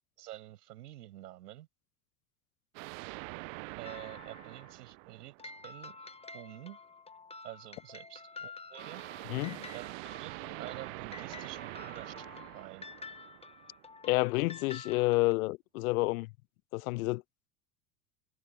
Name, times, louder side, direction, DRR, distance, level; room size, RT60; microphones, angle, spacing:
voice 1, 0.2-1.7 3.8-5.3 5.6-6.0 6.3-6.8 7.4-9.0 9.7-10.3 10.6-12.3 12.5-12.9, right 14 dB, 70° right, 6.8 m, -48 dB
sound 1, 2.7-5.9 8.8-14.0, right 35 dB, 55° right, 1.3 m, -45 dB
sound 2, 3.8-4.7 5.4-15.3, left 4 dB, 10° left, 1.9 m, -49 dB
voice 2, 9.3-9.7 14.0-16.3 16.7-17.2, left 22 dB, 60° left, 0.8 m, -29 dB
figure-of-eight pair, 75°, 49 cm